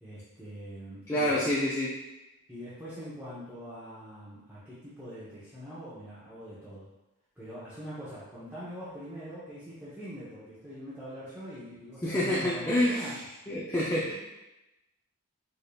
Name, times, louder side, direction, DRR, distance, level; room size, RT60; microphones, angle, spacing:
voice 1, 0.0-1.4 2.5-6.9 7.4-13.2, equal, 10° right, -11 dB, 0.8 m, -43 dB
voice 2, 1.1-1.9 12.0-13.1 13.5-14.1, left 1 dB, 10° left, -7 dB, 0.4 m, -27 dB
5.0 x 2.7 x 2.3 m, 0.96 s
head